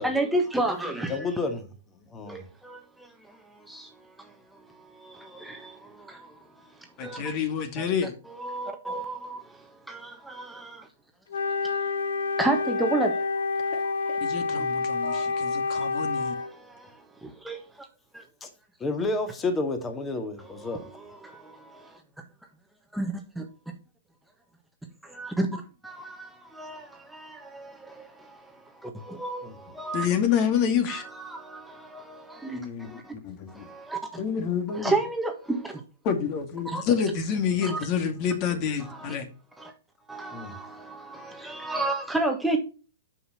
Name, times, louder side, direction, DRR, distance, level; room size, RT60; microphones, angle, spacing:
voice 1, 0.0-1.3 2.2-7.4 7.8-7.9 8.3-9.5 9.9-10.9 12.4-13.3 13.8-13.9 14.6-14.7 15.0-15.5 16.2-17.9 18.1-18.2 20.4-22.0 22.9-23.5 25.0-30.1 30.9-33.1 33.5-34.2 34.7-35.8 36.6-36.8 37.6-37.8 38.8-39.1 39.6-39.7 40.1-42.6, right 2 dB, 5° right, 1.5 m, -33 dB
voice 2, 1.1-1.7 2.1-2.5 18.4-18.5 18.8-20.9 29.4-29.5 40.3-40.5, left 3 dB, 20° left, 2.2 m, -30 dB
voice 3, 7.0-8.1 13.7-16.3 29.9-31.0 32.5-33.7 34.2-35.0 36.0-39.3, left 7 dB, 40° left, 2.2 m, -28 dB
Wind instrument woodwind instrument, 11.3-16.5, left 4 dB, 70° left, 1.2 m, -28 dB
9.2 x 5.8 x 4.4 m
hypercardioid pair, 120°, 0 cm